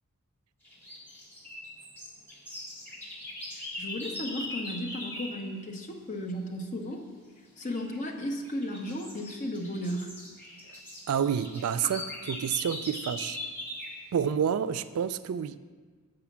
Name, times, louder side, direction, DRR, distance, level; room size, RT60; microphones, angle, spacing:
sound 1, 0.6-5.4 7.6-8.0 8.4-14.0, left 1 dB, 10° left, 1.7 m, -41 dB
voice 1, 3.5-7.0 7.6-10.1, equal, 35° left, 0.8 m, -35 dB
voice 2, 11.1-12.0 12.3-13.4 14.1-15.6, right 8 dB, 75° right, 0.3 m, -28 dB
7.0 x 5.0 x 7.2 m
head